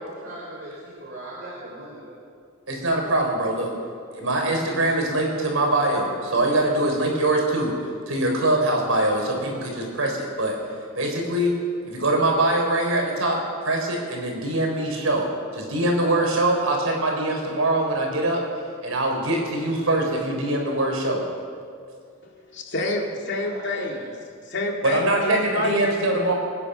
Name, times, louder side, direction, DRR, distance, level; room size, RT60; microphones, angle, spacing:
voice 1, 0.0-2.2 19.5-19.9 23.4-23.9, right 2 dB, 50° right, -6 dB, 4.0 m, -40 dB
voice 2, 2.7-3.7 4.1-7.7 8.1-10.6 11.0-11.5 11.8-15.3 15.5-18.4 18.8-21.2 24.8-26.3, right 1 dB, 85° right, 1 dB, 4.0 m, -23 dB
voice 3, 22.5-24.1 24.5-25.9, left 2 dB, 60° left, 0 dB, 2.4 m, -28 dB
25.5 x 9.9 x 5.6 m, 2.2 s
head